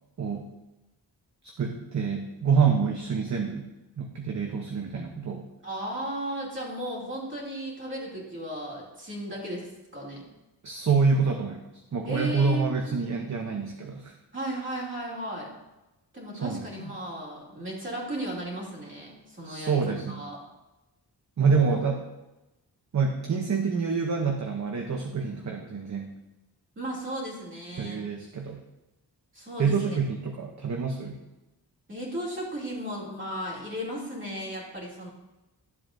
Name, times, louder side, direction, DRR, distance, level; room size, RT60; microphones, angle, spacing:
voice 1, 0.2-0.5 1.6-3.7 4.0-5.5 10.6-11.6 11.9-14.1 16.3-16.9 19.4-20.3 21.4-22.0 22.9-26.1 27.8-28.6 29.6-31.2, right 5 dB, 45° right, 3 dB, 0.7 m, -27 dB
voice 2, 5.6-10.2 12.0-13.0 14.3-15.5 16.1-19.8 20.1-20.4 21.4-21.9 26.8-28.0 29.3-30.0 31.9-35.1, right 1 dB, 30° right, -5 dB, 2.6 m, -35 dB
12.0 x 7.6 x 2.6 m, 1.0 s
wide cardioid pair, 155°, 41 cm